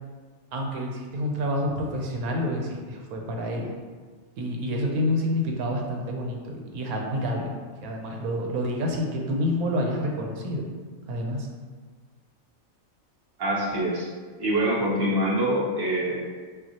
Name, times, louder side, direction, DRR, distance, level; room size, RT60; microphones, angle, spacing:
voice 1, 0.5-3.7 4.4-7.5 7.8-10.7 11.1-11.5, left 1 dB, 80° right, 1 dB, 1.2 m, -28 dB
voice 2, 13.4-14.1 14.4-16.3, right 1 dB, 25° right, -5 dB, 0.5 m, -25 dB
5.7 x 2.4 x 2.8 m, 1.5 s
omnidirectional pair, 1.5 m